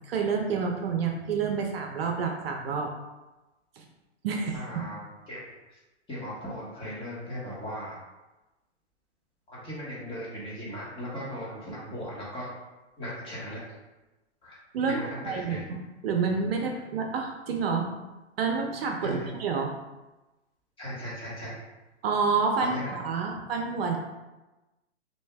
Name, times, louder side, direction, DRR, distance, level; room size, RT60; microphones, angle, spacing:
voice 1, 0.1-2.9 3.8-3.9 4.2-4.9 14.7-15.0 15.3-15.8 16.0-17.8 18.4-19.7 22.0-24.0, right 5 dB, 55° right, 2 dB, 0.7 m, -28 dB
voice 2, 4.5-5.0 5.3-5.4 5.7-5.8 6.1-8.0 9.5-12.5 13.0-13.6 14.4-14.6 14.9-15.7 19.0-19.3 20.8-21.6 22.6-22.9, equal, 15° left, -7 dB, 1.4 m, -37 dB
6.3 x 2.8 x 2.3 m, 1.1 s
hypercardioid pair, 140°, 36 cm